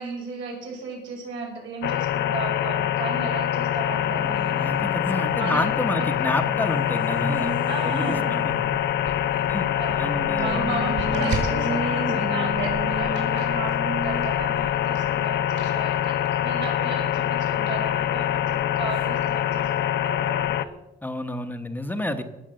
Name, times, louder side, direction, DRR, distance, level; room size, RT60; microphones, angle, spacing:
voice 1, 0.0-4.4 5.4-5.7 7.7-8.4 9.7-16.2 16.4-20.7, right 4 dB, 85° right, 0 dB, 5.7 m, -35 dB
sound 1, 1.8-20.6, left 11 dB, 65° left, 0.6 m, -25 dB
Race car auto racing, 3.7-19.9, right 4 dB, 25° right, 1.0 m, -37 dB
voice 2, 4.6-7.6 7.8-8.7 9.5-9.7 10.0-10.7 11.1-11.4 21.0-22.2, left 1 dB, 10° left, 7 dB, 1.0 m, -29 dB
sound 2, 8.5-20.6, right 4 dB, 65° right, 5.7 m, -40 dB
18.0 x 7.3 x 7.6 m, 1.0 s
cardioid pair, 145°, 19 cm